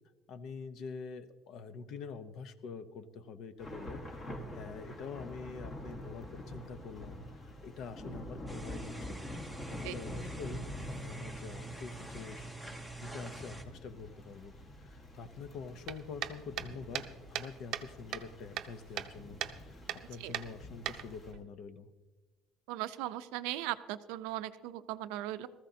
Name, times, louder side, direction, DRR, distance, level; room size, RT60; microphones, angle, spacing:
voice 1, 0.3-9.2 9.7-21.9, left 5 dB, 45° left, 12 dB, 0.7 m, -46 dB
Thunder / Rain, 3.6-21.3, left 1 dB, 25° left, 1.4 m, -46 dB
sound 1, 8.5-13.6, right 2 dB, 5° left, 0.8 m, -46 dB
sound 2, 15.9-17.9 18.1-19.1 19.4-19.6 19.9-20.0 20.3-21.4, right 12 dB, 50° right, 0.7 m, -38 dB
voice 2, 22.7-25.5, right 14 dB, 90° right, 12 dB, 0.6 m, -38 dB
19.0 x 14.5 x 2.8 m, 1.2 s
cardioid pair, 170°, 0 cm